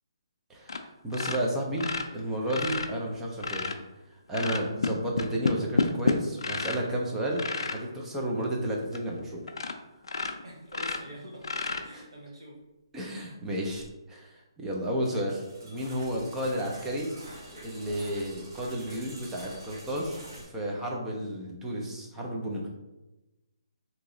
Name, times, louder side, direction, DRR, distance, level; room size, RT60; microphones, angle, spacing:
voice 1, 0.5-1.9 2.1-3.7 4.3-9.4 12.9-17.1 17.5-22.7, right 1 dB, 10° right, -2 dB, 0.5 m, -32 dB
sound 1, 0.7-0.8 1.1-3.8 4.3-6.9 7.3-7.8 8.4-8.5 8.9-9.0 9.5-9.8 10.0-12.2 13.7-13.8, left 4 dB, 80° left, 0.4 m, -30 dB
voice 2, 10.4-12.6, right 1 dB, 70° right, -2 dB, 1.1 m, -46 dB
sound 2, 15.3-20.4, right 1 dB, 50° right, 1.2 m, -47 dB
2.9 x 2.9 x 3.7 m, 1.0 s
hypercardioid pair, 165°, 3 cm